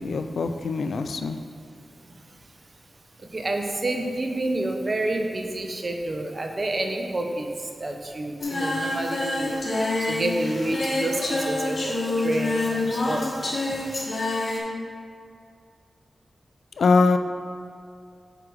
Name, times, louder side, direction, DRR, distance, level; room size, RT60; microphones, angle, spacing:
voice 1, 0.0-1.4 16.8-17.2, left 4 dB, 80° left, 7 dB, 0.3 m, -22 dB
voice 2, 3.3-7.5 7.8-9.6 10.1-12.0 12.2-13.3, right 2 dB, 45° right, 3 dB, 0.8 m, -28 dB
Singing, 8.4-14.6, left 2 dB, 50° left, 1.5 m, -27 dB
4.9 x 4.7 x 6.1 m, 2.4 s
cardioid pair, 50°, 0 cm